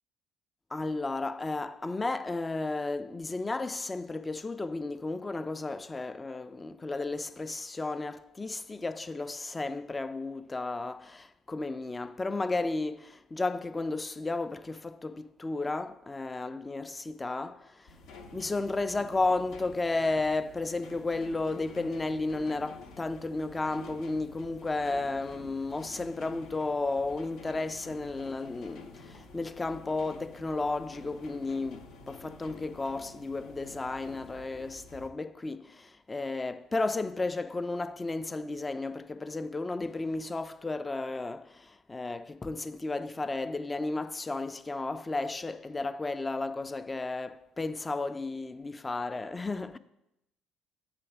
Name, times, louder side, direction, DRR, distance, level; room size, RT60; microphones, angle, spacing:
voice 1, 0.7-17.9 18.3-49.8, left 3 dB, 20° left, 0.4 m, -33 dB
rain on the window + thunder, 17.9-35.1, left 3 dB, 65° left, 0.7 m, -50 dB
7.6 x 3.3 x 5.7 m
hypercardioid pair, 60°, 0 cm